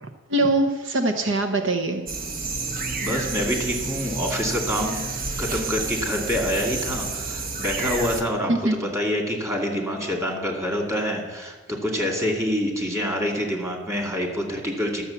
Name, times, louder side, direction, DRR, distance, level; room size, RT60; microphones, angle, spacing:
voice 1, 0.0-2.1 8.5-8.7, right 2 dB, 70° right, 6 dB, 0.9 m, -23 dB
sound 1, 2.1-8.2, right 3 dB, 45° right, 1.1 m, -30 dB
voice 2, 3.0-5.0 5.4-8.5 8.8-11.6 11.8-15.0, equal, 15° right, 1 dB, 2.3 m, -26 dB
12.0 x 7.1 x 7.0 m, 1.4 s
head